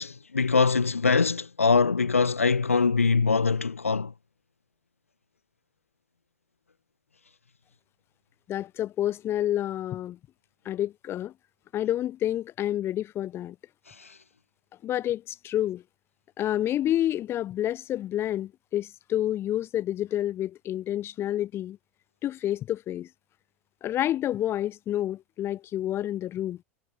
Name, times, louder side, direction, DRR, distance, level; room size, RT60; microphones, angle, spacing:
voice 1, 0.0-4.1 13.9-14.1, left 4 dB, 80° left, 2.1 m, -23 dB
voice 2, 8.5-10.2 10.6-11.3 11.7-13.5 14.8-15.8 16.4-21.8 22.2-23.1 23.8-26.6, left 12 dB, 35° left, 2.9 m, -29 dB
figure-of-eight pair, 80°, 7 cm